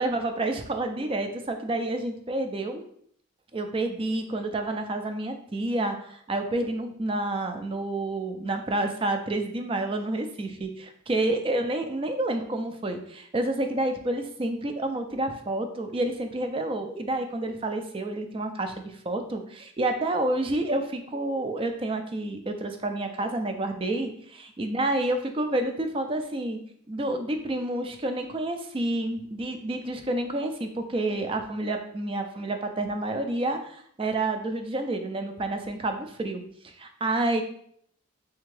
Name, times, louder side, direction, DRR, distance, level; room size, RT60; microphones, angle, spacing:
voice 1, 0.0-2.8 3.5-26.6 26.9-37.4, right 2 dB, 25° right, 6 dB, 0.3 m, -29 dB
3.5 x 3.3 x 3.2 m, 0.65 s
head